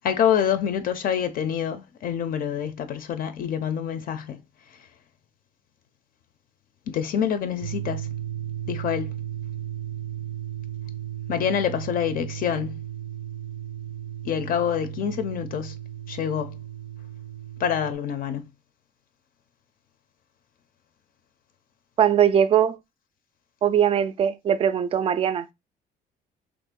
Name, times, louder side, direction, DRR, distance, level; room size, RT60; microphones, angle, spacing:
voice 1, 0.0-4.4 6.9-8.1 8.7-9.1 11.3-12.8 14.2-15.7 16.1-16.6 17.6-18.4, left 8 dB, 60° left, 0.5 m, -26 dB
sound 1, 7.6-17.9, right 11 dB, 80° right, 0.6 m, -35 dB
voice 2, 22.0-22.8 23.6-25.5, right 9 dB, 35° right, 0.4 m, -21 dB
3.0 x 2.5 x 3.6 m
cardioid pair, 110°, 17 cm